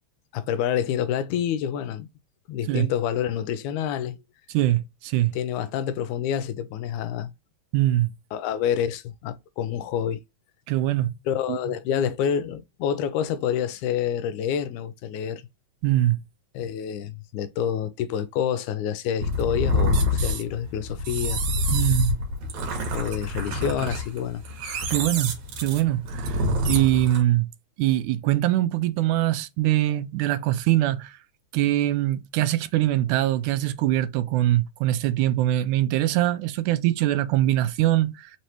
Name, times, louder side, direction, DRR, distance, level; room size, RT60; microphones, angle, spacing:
voice 1, 0.3-2.1 2.5-4.2 5.3-7.3 8.3-10.2 11.3-15.4 16.5-21.4 22.8-24.4, left 9 dB, 85° left, 2.0 m, -28 dB
voice 2, 4.5-5.3 7.7-8.1 10.7-11.1 11.5-11.6 15.8-16.2 21.7-22.2 24.9-25.3 25.6-26.4 26.7-27.5 27.8-31.2 31.5-38.3, right 14 dB, 90° right, 2.0 m, -23 dB
sound 1, 19.2-27.2, left 1 dB, 70° right, 2.6 m, -26 dB
5.3 x 3.2 x 2.9 m
omnidirectional pair, 3.4 m